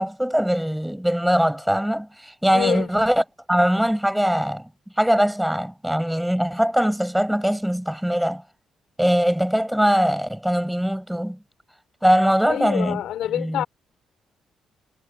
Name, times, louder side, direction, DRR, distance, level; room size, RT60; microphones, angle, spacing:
voice 1, 0.0-4.7 5.0-8.4 9.0-11.4 12.0-13.0 13.3-13.7, equal, 5° right, 4.5 m, -21 dB
voice 2, 2.5-2.9 12.5-13.6, left 11 dB, 80° left, 3.5 m, -26 dB
cardioid pair, 90°, 0 cm